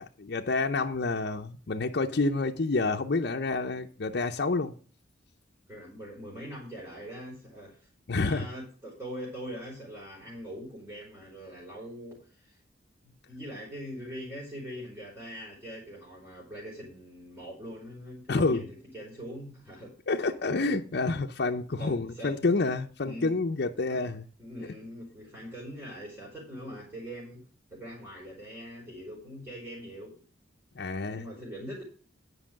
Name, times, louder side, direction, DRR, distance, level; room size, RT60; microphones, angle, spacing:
voice 1, 0.0-4.7 8.1-8.5 18.3-18.6 20.1-24.2 30.8-31.3, left 3 dB, 55° left, 0.6 m, -28 dB
voice 2, 5.7-7.9 8.2-12.6 13.3-19.9 21.8-22.5 23.0-23.4 23.9-24.1 24.4-27.4 27.7-30.2 31.1-31.8, equal, 10° right, 3.7 m, -42 dB
9.8 x 5.3 x 7.3 m
head